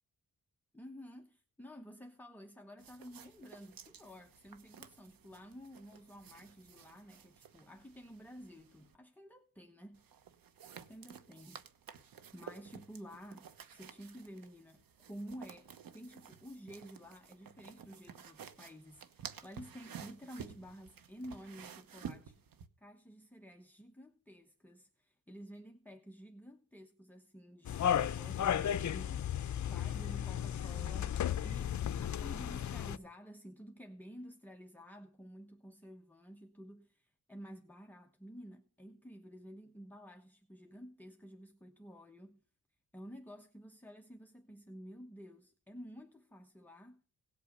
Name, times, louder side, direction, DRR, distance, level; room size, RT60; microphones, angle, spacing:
voice 1, 0.7-10.0 10.7-11.6 12.3-22.3 22.8-29.3 29.7-42.4 42.9-47.0, equal, 5° left, 1.1 m, -52 dB
sound 1, 2.8-8.9 9.9-22.7, right 7 dB, 85° right, 1.2 m, -53 dB
sound 2, 27.6-33.0, left 9 dB, 55° left, 0.7 m, -34 dB
17.5 x 8.4 x 5.5 m
wide cardioid pair, 115°, 34 cm